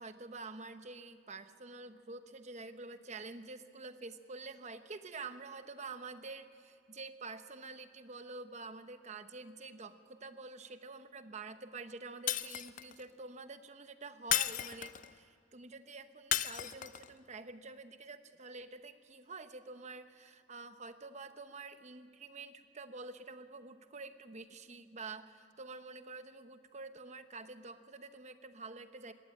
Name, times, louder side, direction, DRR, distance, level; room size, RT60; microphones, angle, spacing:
voice 1, 0.0-29.1, right 3 dB, 40° right, 10 dB, 0.9 m, -48 dB
Shatter, 12.3-13.0 14.3-15.1 16.3-17.1, left 11 dB, 45° left, 0.5 m, -34 dB
20.0 x 16.5 x 8.8 m, 2.4 s
head